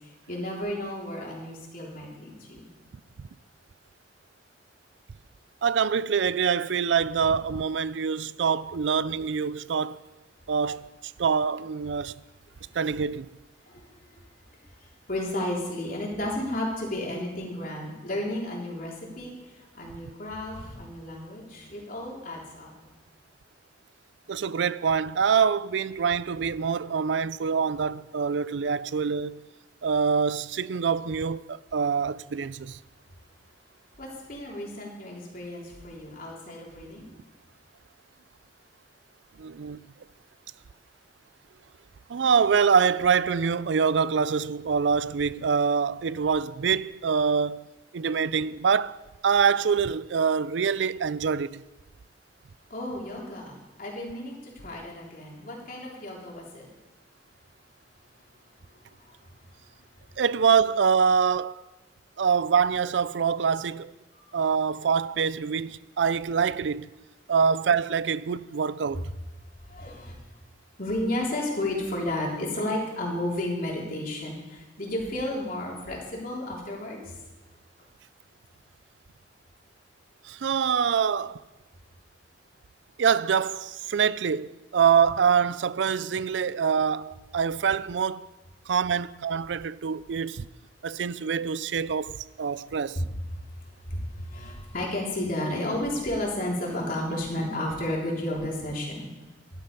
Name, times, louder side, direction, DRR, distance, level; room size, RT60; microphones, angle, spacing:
voice 1, 0.0-2.7 13.7-13.8 15.1-19.3 19.7-22.7 34.0-37.1 52.7-53.5 53.8-56.7 69.7-70.1 70.8-77.1 92.9-93.1 93.9-99.1, left 1 dB, 50° left, 3.5 m, -32 dB
voice 2, 5.6-10.0 10.5-10.9 11.2-12.2 12.7-13.3 24.3-29.4 29.8-32.8 39.4-39.8 42.1-47.7 47.9-51.6 60.2-61.6 62.2-63.9 64.3-66.9 67.3-69.1 80.2-81.4 83.0-88.3 88.7-90.5 90.8-93.0, right 6 dB, 85° right, 0.4 m, -25 dB
12.5 x 11.5 x 5.4 m
head